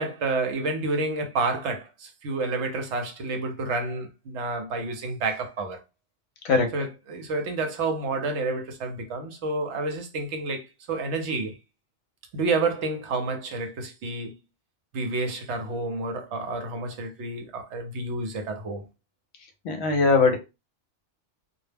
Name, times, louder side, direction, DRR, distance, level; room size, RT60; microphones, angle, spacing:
voice 1, 0.0-5.8 6.7-11.6 12.3-14.4 14.9-18.8, right 3 dB, 70° right, 0.9 m, -29 dB
voice 2, 19.6-20.4, left 4 dB, 70° left, 0.9 m, -20 dB
2.3 x 2.0 x 3.3 m
omnidirectional pair, 1.3 m